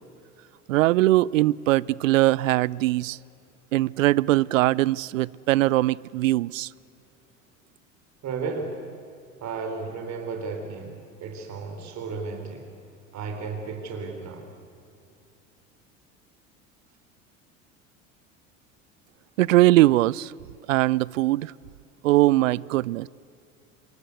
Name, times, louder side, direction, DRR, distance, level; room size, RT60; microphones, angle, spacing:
voice 1, 0.7-3.2 3.7-6.7 19.4-20.3 20.7-21.5 22.0-23.1, right 17 dB, 75° right, 25 dB, 0.6 m, -21 dB
voice 2, 8.2-8.8 9.4-12.7 13.1-14.5, right 4 dB, 45° right, 4 dB, 3.9 m, -34 dB
26.5 x 22.5 x 8.3 m, 2.5 s
hypercardioid pair, 70°, 39 cm